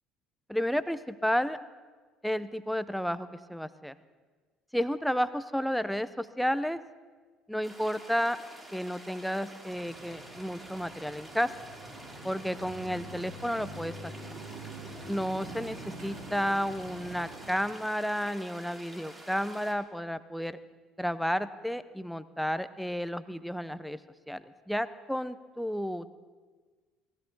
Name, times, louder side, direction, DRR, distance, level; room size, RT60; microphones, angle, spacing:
voice 1, 0.5-1.6 2.2-3.9 4.7-6.8 7.5-8.4 8.7-11.5 12.2-14.1 15.1-20.6 21.0-24.0 24.3-26.1, equal, ahead, 14 dB, 0.7 m, -32 dB
sound 1, 7.6-19.7, right 1 dB, 20° right, 2.7 m, -49 dB
sound 2, 9.7-17.5, right 1 dB, 70° right, 5.1 m, -45 dB
18.0 x 14.0 x 4.0 m, 1.4 s
hypercardioid pair, 60°, 0 cm